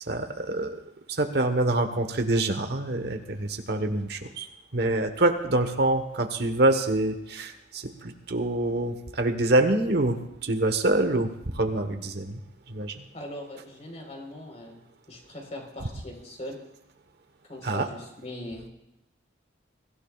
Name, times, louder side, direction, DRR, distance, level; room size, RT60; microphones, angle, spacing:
voice 1, 0.1-0.8 1.1-12.4 12.7-13.0 17.6-17.9, right 2 dB, 60° right, 7 dB, 1.2 m, -26 dB
voice 2, 13.1-14.8 15.1-16.6 17.5-18.7, left 1 dB, 35° left, 1 dB, 4.0 m, -40 dB
23.5 x 15.5 x 2.4 m, 0.89 s
head